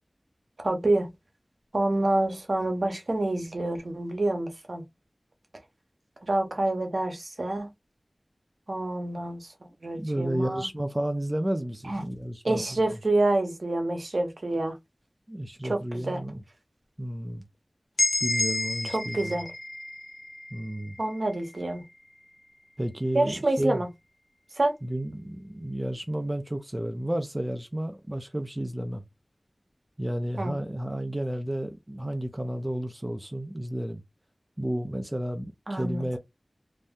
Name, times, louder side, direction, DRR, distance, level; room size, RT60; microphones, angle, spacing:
voice 1, 0.6-1.1 1.7-4.8 6.2-7.7 8.7-9.5 9.8-10.7 11.9-12.0 12.4-14.8 15.6-16.2 18.8-19.5 21.0-21.8 23.1-23.9 24.6-24.8 30.4-30.5 35.7-36.2, right 2 dB, 65° right, 0.8 m, -27 dB
voice 2, 9.9-12.6 15.3-16.4 17.0-17.4 18.2-19.4 20.5-21.0 22.8-23.8 24.8-29.0 30.0-34.0 34.6-36.2, right 1 dB, 20° right, 0.4 m, -32 dB
sound 1, 18.0-21.8, left 2 dB, 85° left, 0.6 m, -31 dB
2.6 x 2.1 x 3.5 m
wide cardioid pair, 40°, 0 cm